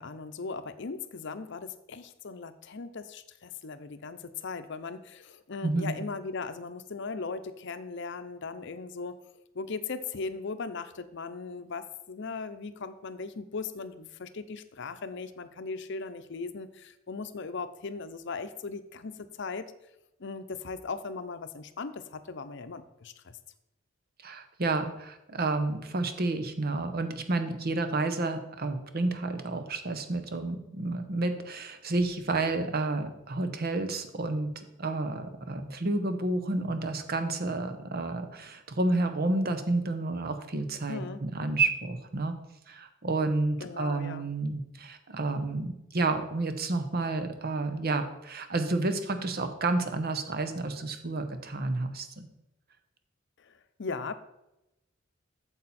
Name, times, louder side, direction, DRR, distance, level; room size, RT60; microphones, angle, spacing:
voice 1, 0.0-9.2 9.5-19.7 20.2-23.4 40.9-41.2 43.6-44.3 53.4-53.5 53.8-54.1, left 4 dB, 60° left, 10 dB, 0.7 m, -38 dB
voice 2, 5.6-6.0 24.2-34.5 34.8-42.3 42.7-52.3, right 2 dB, 50° right, 8 dB, 0.9 m, -30 dB
8.6 x 7.2 x 4.2 m, 0.89 s
head